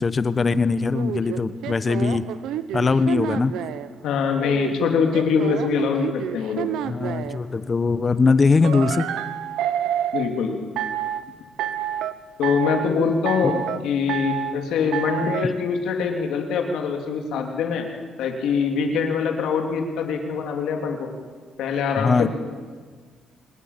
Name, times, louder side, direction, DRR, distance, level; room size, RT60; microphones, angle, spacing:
voice 1, 0.0-2.3 2.7-3.5 6.9-9.0 22.0-22.3, left 4 dB, 35° left, 13 dB, 1.1 m, -21 dB
sound 1, 0.9-3.9 4.4-7.4 8.6-10.3 10.8-11.2 11.6-12.1 12.4-12.9 13.2-13.8 14.1-14.6 14.9-15.4, right 11 dB, 85° right, 1.1 m, -28 dB
voice 2, 4.0-6.7 10.1-10.6 12.4-17.9 18.2-21.1 21.6-22.3, left 5 dB, 80° left, 3 dB, 3.3 m, -23 dB
25.5 x 20.0 x 7.4 m, 1.6 s
cardioid pair, 90°, 0 cm